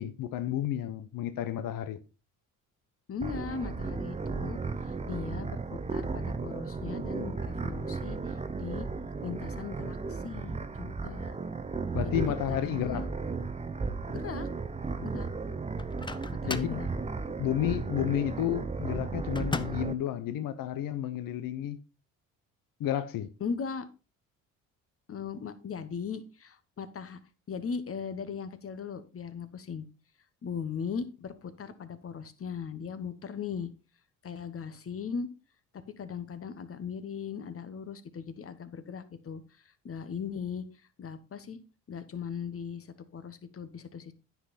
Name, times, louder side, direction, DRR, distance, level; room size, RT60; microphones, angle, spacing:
voice 1, 0.0-2.0 11.9-13.1 16.4-16.8 17.4-21.8 22.8-23.3, left 11 dB, 65° left, 0.8 m, -31 dB
voice 2, 3.1-8.9 9.2-11.3 12.0-12.2 12.5-13.1 14.1-14.5 15.0-15.3 16.3-16.9 23.4-23.9 25.1-27.2 27.5-29.9 30.4-33.7 34.2-35.3 35.7-39.4 39.8-40.7 41.0-41.6 41.9-44.1, left 6 dB, 40° left, 1.2 m, -38 dB
sound 1, 3.2-19.9, right 4 dB, 20° right, 0.8 m, -35 dB
Microwave oven, 15.8-16.8 19.3-20.0, left 3 dB, 15° left, 0.5 m, -37 dB
9.6 x 5.8 x 4.1 m
supercardioid pair, 75°, 36 cm